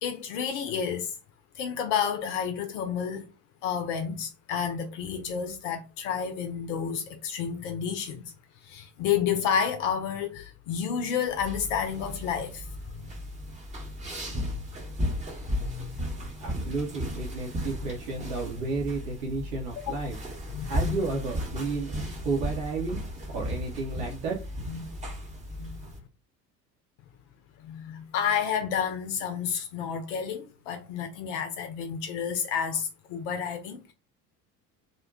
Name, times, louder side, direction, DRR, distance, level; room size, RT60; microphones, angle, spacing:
voice 1, 0.0-1.2 1.5-3.3 3.6-13.1 15.6-16.0 20.5-21.0 24.7-24.9 25.5-25.7 27.6-33.9, left 7 dB, 50° left, 0.5 m, -30 dB
sound 1, 11.3-26.0, equal, 15° right, 0.8 m, -35 dB
voice 2, 16.4-20.2 20.6-23.0 23.3-24.4, right 3 dB, 65° right, 0.9 m, -32 dB
2.5 x 2.1 x 3.5 m
figure-of-eight pair, 65°, 49 cm